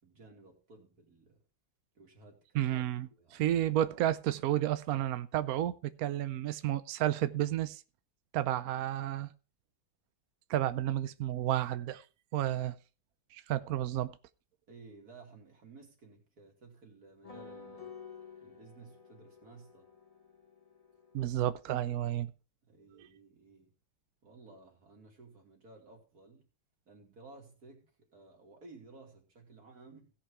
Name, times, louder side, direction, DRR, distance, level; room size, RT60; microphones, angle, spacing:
voice 1, 0.0-1.4 1.9-2.7 3.1-3.6 14.7-17.9 18.4-19.9 22.7-23.7 24.2-26.4 26.9-30.1, right 3 dB, 45° right, 3.1 m, -56 dB
voice 2, 2.5-7.8 8.3-9.3 10.5-12.0 12.3-12.7 13.3-14.1 21.1-22.3 23.0-23.1, right 12 dB, 75° right, 0.8 m, -31 dB
sound 1, 17.2-22.0, left 5 dB, 25° left, 0.8 m, -52 dB
16.5 x 5.7 x 4.8 m
omnidirectional pair, 2.2 m